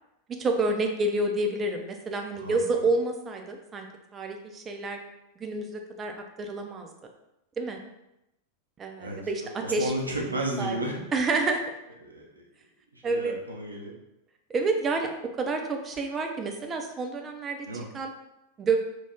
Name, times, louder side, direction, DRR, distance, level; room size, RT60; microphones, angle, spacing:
voice 1, 0.4-3.9 4.1-5.0 5.4-6.1 6.4-6.9 7.6-7.8 8.8-9.9 10.6-10.8 11.1-11.6 13.0-13.4 14.5-17.7 17.9-18.1 18.6-18.8, right 3 dB, 20° right, 3 dB, 0.4 m, -28 dB
voice 2, 2.3-2.6 9.0-11.0 12.0-12.4 12.9-13.9 17.6-17.9, right 1 dB, 80° right, -1 dB, 0.5 m, -33 dB
2.4 x 2.1 x 3.3 m, 0.90 s
figure-of-eight pair, 90°, 0 cm